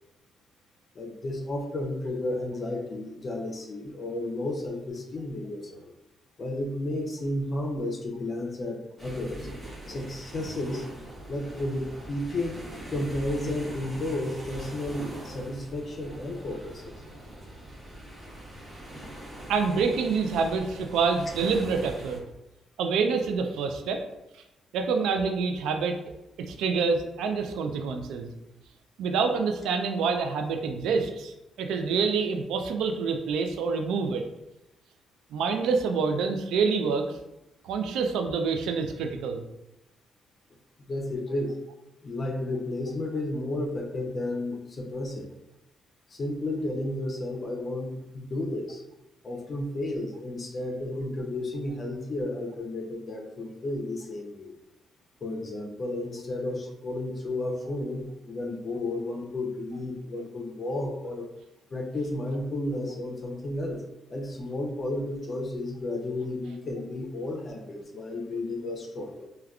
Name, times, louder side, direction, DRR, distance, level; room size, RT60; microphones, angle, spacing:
voice 1, 0.9-5.9 6.4-9.5 9.9-10.9 11.3-12.6 12.9-16.9 40.9-41.6 42.0-45.3 46.1-48.8 49.2-54.5 55.2-61.3 61.7-63.8 64.1-69.3, left 1 dB, 40° left, 1 dB, 0.5 m, -32 dB
sound 1, 9.0-22.2, right 1 dB, 20° right, 0.8 m, -42 dB
voice 2, 19.5-22.2 22.8-24.0 24.3-24.4 24.7-26.0 26.4-28.3 29.0-34.3 35.3-37.2 37.6-39.4, right 5 dB, 85° right, 5 dB, 0.3 m, -27 dB
3.4 x 2.2 x 2.3 m, 0.93 s
cardioid pair, 90°, 0 cm